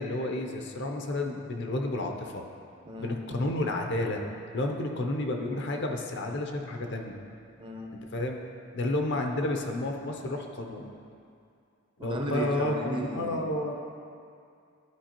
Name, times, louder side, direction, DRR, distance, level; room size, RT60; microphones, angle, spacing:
voice 1, 0.0-2.4 3.0-4.2 4.5-7.1 8.1-8.4 8.7-10.9 12.0-13.7, left 2 dB, 55° left, 3 dB, 0.6 m, -31 dB
voice 2, 2.8-3.2 7.6-7.9 12.0-13.4, right 1 dB, 20° right, 0 dB, 0.6 m, -35 dB
11.5 x 4.6 x 2.9 m, 2.4 s
head